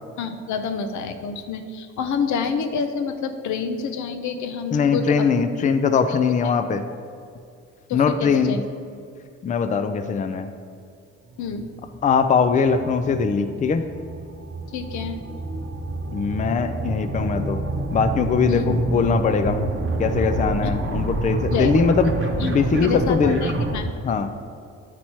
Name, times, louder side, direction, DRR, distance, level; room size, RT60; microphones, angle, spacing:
voice 1, 0.2-5.3 6.4-6.5 7.9-8.6 11.4-11.7 14.7-15.2 18.5-18.6 20.6-20.7 21.5-21.7 22.4-22.5 22.8-23.9, left 5 dB, 70° left, 8 dB, 0.6 m, -28 dB
voice 2, 4.7-6.9 7.9-8.6 9.4-10.5 12.0-13.9 16.1-17.6 17.9-19.6 20.0-22.1 22.4-23.4 24.0-24.3, left 5 dB, 25° left, 9 dB, 0.4 m, -21 dB
sound 1, 11.3-23.8, right 2 dB, 40° right, 0.8 m, -28 dB
8.9 x 3.0 x 4.2 m, 2.4 s
cardioid pair, 90°, 30 cm